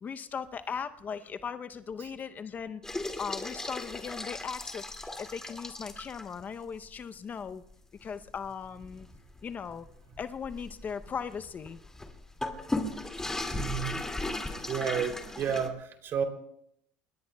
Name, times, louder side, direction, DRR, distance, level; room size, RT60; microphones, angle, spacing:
voice 1, 0.0-7.6 8.0-9.1 9.4-9.9 10.2-11.8 13.7-13.9, left 6 dB, 30° left, 10 dB, 0.7 m, -38 dB
sound 1, 2.8-6.4 6.9-7.0 7.4-7.5 8.0-15.7, left 2 dB, 10° left, 2.3 m, -37 dB
voice 2, 13.5-14.0 14.6-16.2, right 7 dB, 45° right, 5 dB, 3.1 m, -31 dB
28.0 x 21.0 x 2.3 m, 0.72 s
supercardioid pair, 110°, 6 cm